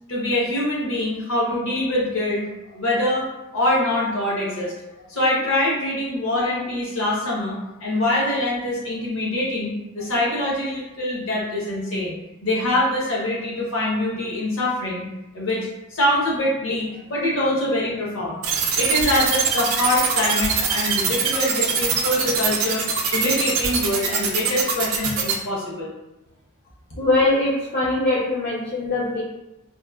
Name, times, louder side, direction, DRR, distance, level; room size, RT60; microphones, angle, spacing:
voice 1, 0.1-2.5 2.7-3.3 3.5-4.7 5.1-15.0 15.3-18.4 18.8-22.8 23.1-25.9, left 1 dB, 65° left, -5 dB, 0.8 m, -24 dB
sound 1, 18.4-25.3, right 6 dB, 75° right, 0.4 m, -22 dB
voice 2, 27.0-29.2, left 2 dB, 40° left, -7 dB, 0.4 m, -21 dB
2.9 x 2.0 x 2.3 m, 0.96 s
head